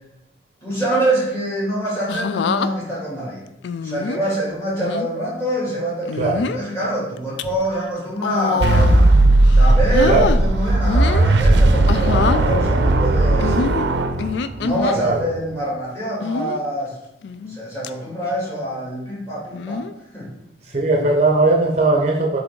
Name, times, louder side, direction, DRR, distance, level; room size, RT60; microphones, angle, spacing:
voice 1, 0.6-3.4 3.8-9.1 9.5-13.6 14.6-17.0 17.5-19.8 20.1-20.3, right 1 dB, 15° left, -6 dB, 2.3 m, -25 dB
sound 1, 2.1-2.7 3.6-4.2 4.8-5.1 6.1-6.6 7.2-7.4 8.2-9.1 9.4-10.4 10.8-11.3 11.9-12.4 13.4-15.0 16.2-16.6 17.2-17.6 17.8-17.9 19.5-19.9 21.0-21.3, left 5 dB, 75° left, 0.3 m, -25 dB
sound 2, 8.6-14.8, right 2 dB, 80° right, 0.5 m, -16 dB
voice 2, 15.0-15.3 20.7-22.4, right 3 dB, 40° right, 1 dB, 0.6 m, -18 dB
7.6 x 3.4 x 3.6 m, 0.86 s
head